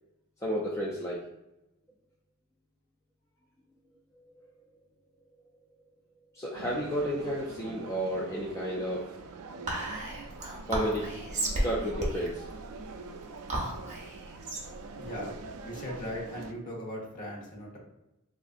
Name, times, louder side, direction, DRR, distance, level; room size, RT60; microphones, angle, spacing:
voice 1, 0.4-1.2 6.3-9.1 10.7-11.1 11.6-12.5, equal, 15° left, -5 dB, 0.3 m, -31 dB
sound 1, 6.5-16.5, right 3 dB, 70° right, 0.3 m, -44 dB
Whispering, 9.7-16.3, right 1 dB, 30° right, 0.7 m, -35 dB
voice 2, 15.0-15.4 15.6-17.8, equal, 40° left, -3 dB, 0.8 m, -38 dB
3.6 x 2.4 x 2.5 m, 0.93 s
head